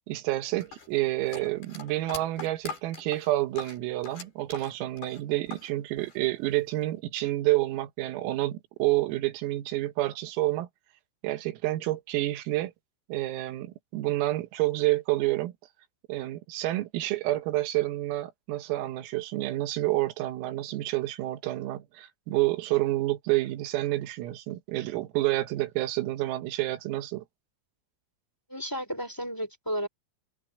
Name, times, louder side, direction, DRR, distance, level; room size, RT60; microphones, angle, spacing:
voice 1, 0.1-10.7 11.2-12.7 13.1-15.5 16.1-27.2, right 17 dB, 85° right, 4.2 m, -29 dB
sound 1, 0.6-5.7 6.0-6.8, left 5 dB, 50° left, 8.3 m, -42 dB
voice 2, 28.5-29.9, equal, 5° left, 2.5 m, -33 dB
omnidirectional pair, 5.9 m